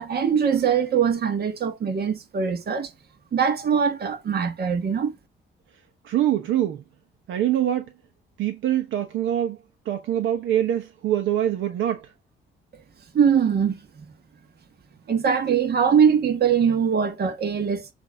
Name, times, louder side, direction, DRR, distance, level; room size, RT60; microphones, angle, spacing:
voice 1, 0.0-2.9 3.3-5.1 13.1-14.1 15.1-17.9, right 7 dB, 55° right, 1.4 m, -22 dB
voice 2, 6.0-6.8 7.3-7.9 8.4-9.6 9.8-12.1, right 11 dB, 80° right, 1.0 m, -24 dB
8.1 x 2.8 x 4.5 m
cardioid pair, 90°, 20 cm